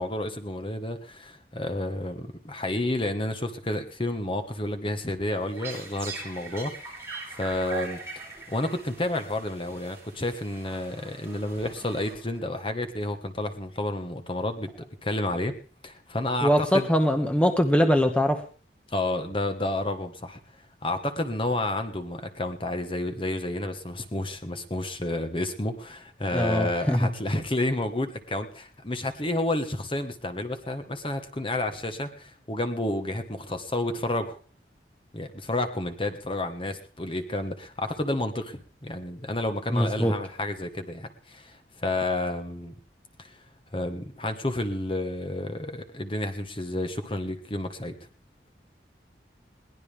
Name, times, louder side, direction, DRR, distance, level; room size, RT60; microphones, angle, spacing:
voice 1, 0.0-7.0 7.3-8.0 8.5-15.6 15.8-16.9 18.9-20.4 20.8-34.4 35.1-42.7 43.2-43.3 43.7-47.9, left 1 dB, 30° left, 6 dB, 1.5 m, -30 dB
sound 1, 5.3-12.6, right 3 dB, 15° right, 7.1 m, -41 dB
voice 2, 16.4-18.4 26.3-27.0 39.7-40.1, equal, 5° left, 6 dB, 1.4 m, -22 dB
21.5 x 18.0 x 3.5 m, 0.38 s
head